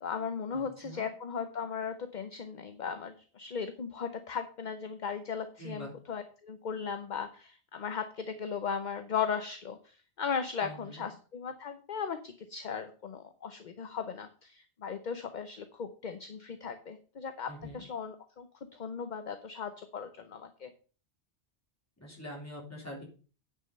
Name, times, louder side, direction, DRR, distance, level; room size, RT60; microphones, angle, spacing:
voice 1, 0.0-17.5 17.7-18.5 18.7-20.7, left 6 dB, 45° left, 9 dB, 0.8 m, -37 dB
voice 2, 0.5-1.1 5.6-5.9 10.6-11.0 17.5-17.8 22.0-23.1, equal, 15° left, -2 dB, 3.5 m, -44 dB
9.7 x 5.7 x 5.3 m, 0.38 s
omnidirectional pair, 1.2 m